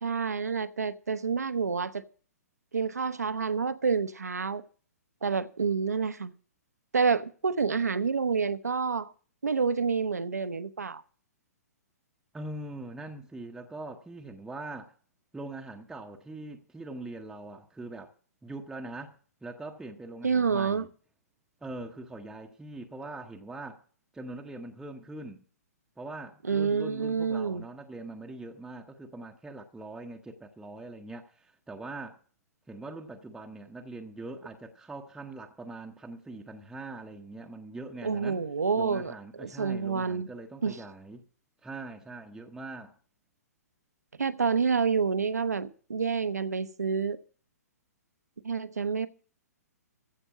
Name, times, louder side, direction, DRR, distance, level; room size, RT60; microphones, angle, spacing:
voice 1, 0.0-2.0 2.7-4.6 5.2-6.3 6.9-9.1 9.4-11.0 20.2-20.8 26.5-27.6 38.0-39.1 39.4-40.3 40.6-40.8 44.2-47.2 48.4-49.1, right 5 dB, 75° right, 0.8 m, -28 dB
voice 2, 12.3-14.9 15.3-18.1 18.4-19.2 19.4-20.9 21.6-23.8 24.1-25.4 26.0-32.2 32.7-38.4 38.8-41.3 41.6-43.0, right 2 dB, 5° right, 0.8 m, -42 dB
15.0 x 5.4 x 8.3 m
figure-of-eight pair, 120°, 9 cm